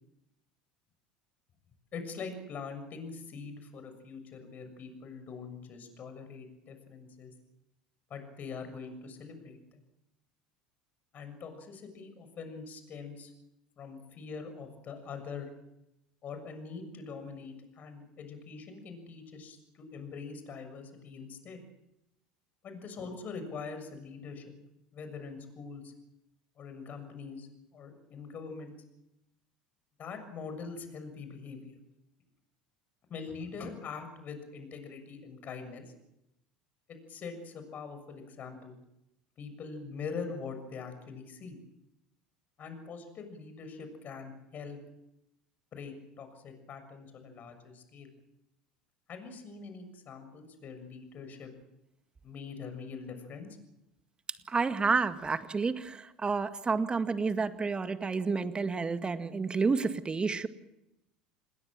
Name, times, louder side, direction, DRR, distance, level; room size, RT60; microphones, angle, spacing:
voice 1, 1.9-7.3 8.1-9.8 11.1-13.3 13.8-15.5 16.2-21.6 22.6-24.4 24.9-25.9 26.6-28.7 30.0-31.8 33.1-35.9 36.9-38.8 39.4-41.6 42.6-44.8 45.7-48.1 49.1-51.5 52.2-53.5, left 5 dB, 40° left, 8 dB, 6.8 m, -43 dB
voice 2, 54.5-60.5, right 4 dB, 20° right, 10 dB, 1.9 m, -30 dB
27.5 x 21.0 x 7.6 m, 0.86 s
hypercardioid pair, 75°, 4 cm